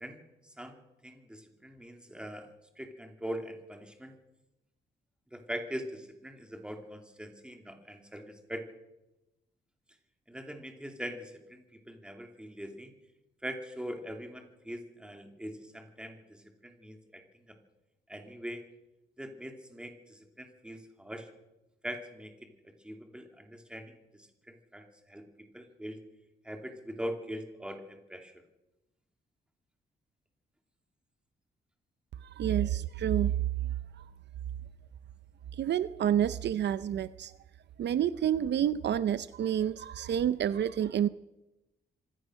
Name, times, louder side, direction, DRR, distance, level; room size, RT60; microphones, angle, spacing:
voice 1, 0.0-2.5 2.8-4.1 5.3-8.7 10.3-12.9 13.4-17.6 18.1-18.6 19.2-21.3 21.8-25.2 25.5-26.0 26.4-28.3, equal, 5° right, 5 dB, 3.0 m, -42 dB
voice 2, 32.2-33.3 34.0-34.1 35.6-37.3 37.8-41.1, right 10 dB, 70° right, 15 dB, 0.6 m, -29 dB
25.5 x 16.5 x 6.4 m, 0.97 s
wide cardioid pair, 140°, 19 cm